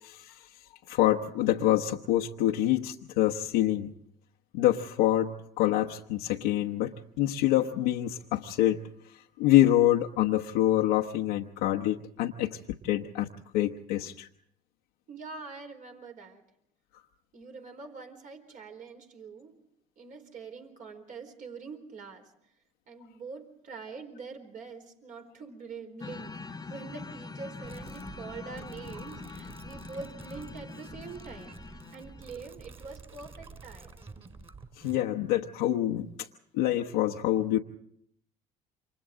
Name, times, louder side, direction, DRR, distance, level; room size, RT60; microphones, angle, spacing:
voice 1, 0.0-0.5 0.9-3.9 4.5-8.8 9.1-14.3 34.8-36.3 36.5-37.6, left 13 dB, 80° left, 1 dB, 1.1 m, -26 dB
voice 2, 15.1-16.4 17.3-19.5 20.0-22.3 22.9-33.9, right 4 dB, 55° right, 4 dB, 4.3 m, -44 dB
sound 1, 26.0-32.4, left 4 dB, 25° left, 1.1 m, -44 dB
sound 2, 27.6-35.0, right 4 dB, 35° right, 4.3 m, -49 dB
28.5 x 26.0 x 3.8 m, 0.70 s
hypercardioid pair, 70°, 17 cm